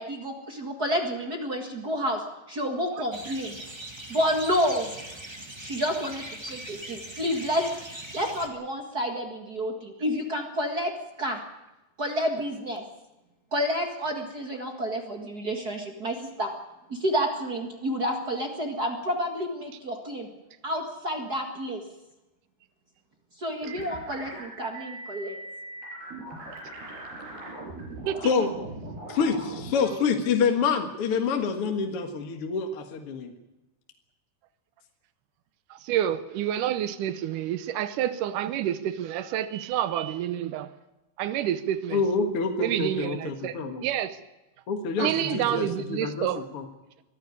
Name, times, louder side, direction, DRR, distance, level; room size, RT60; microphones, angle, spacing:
voice 1, 0.0-2.2 2.5-3.6 4.1-4.9 5.6-10.9 11.2-11.4 12.0-12.8 13.5-16.5 16.9-20.3 20.6-21.8 23.4-25.4, equal, 45° right, 3 dB, 1.2 m, -29 dB
sound 1, 3.1-8.5, right 1 dB, 15° right, 0.9 m, -40 dB
sound 2, 23.6-29.7, right 2 dB, 70° right, 6.8 m, -40 dB
voice 2, 29.1-33.3 41.9-43.8 44.7-46.3 46.5-46.6, left 5 dB, 55° left, 5 dB, 1.7 m, -27 dB
voice 3, 35.7-40.7 41.2-42.0 42.6-44.2 45.0-46.4, right 11 dB, 85° right, 13 dB, 1.8 m, -28 dB
23.0 x 14.0 x 9.7 m, 1.0 s
omnidirectional pair, 4.8 m